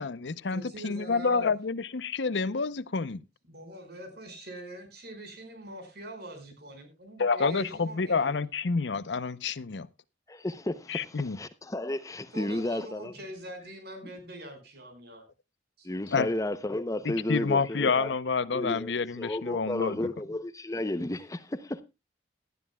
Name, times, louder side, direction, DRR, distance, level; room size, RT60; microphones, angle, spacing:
voice 1, 0.0-3.2 7.2-9.9 10.9-11.4 16.1-16.3 17.0-20.0, left 4 dB, 75° left, 0.7 m, -28 dB
voice 2, 0.5-1.5 3.5-8.4 12.3-15.2 15.8-15.9, right 1 dB, 60° right, 5.1 m, -44 dB
voice 3, 10.3-13.1 15.8-18.1 18.5-21.8, left 1 dB, 20° left, 0.6 m, -33 dB
18.0 x 12.0 x 2.2 m
head